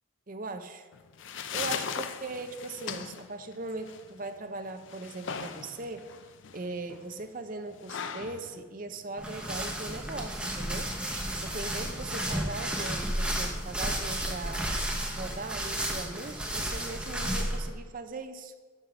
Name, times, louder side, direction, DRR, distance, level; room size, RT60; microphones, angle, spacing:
voice 1, 0.3-0.9 1.5-6.1 6.5-10.9 11.4-14.8 15.2-18.5, right 3 dB, 40° right, 8 dB, 0.6 m, -39 dB
sound 1, 0.9-9.9, left 7 dB, 60° left, 0.5 m, -39 dB
sound 2, 9.2-17.7, right 1 dB, 5° right, 0.9 m, -32 dB
11.5 x 5.6 x 4.9 m, 1.4 s
head